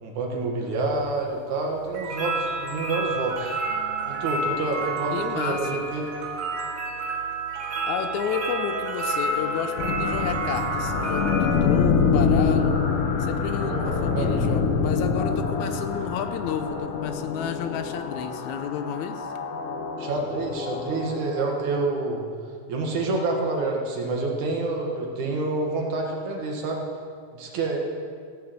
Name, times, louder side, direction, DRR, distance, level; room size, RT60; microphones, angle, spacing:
voice 1, 0.0-3.6 4.1-6.0 13.6-14.3 20.0-22.2 22.7-26.8 27.3-27.8, right 3 dB, 85° right, 0 dB, 3.1 m, -28 dB
sound 1, 0.9-11.6, right 3 dB, 50° right, 2.2 m, -30 dB
voice 2, 5.1-5.7 7.8-12.8 13.2-19.3, left 8 dB, 85° left, 8 dB, 2.1 m, -31 dB
Wind instrument woodwind instrument, 7.9-12.6, left 5 dB, 40° left, 3.6 m, -40 dB
sound 2, 9.8-21.7, left 5 dB, 60° left, 1.8 m, -26 dB
15.0 x 6.9 x 7.9 m, 2.1 s
omnidirectional pair, 3.3 m